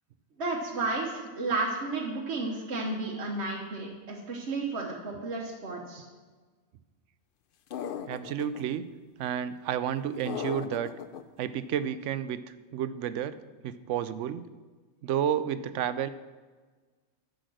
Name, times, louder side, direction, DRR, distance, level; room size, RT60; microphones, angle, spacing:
voice 1, 0.4-6.0, right 3 dB, 60° right, -2 dB, 1.4 m, -32 dB
sound 1, 7.7-8.6 10.3-11.2, left 8 dB, 60° left, 0.6 m, -36 dB
voice 2, 8.1-8.9 9.2-10.9 11.4-12.4 12.7-13.4 13.6-14.4 15.0-16.1, right 9 dB, 75° right, 14 dB, 0.9 m, -31 dB
10.0 x 6.5 x 6.3 m, 1.4 s
omnidirectional pair, 1.3 m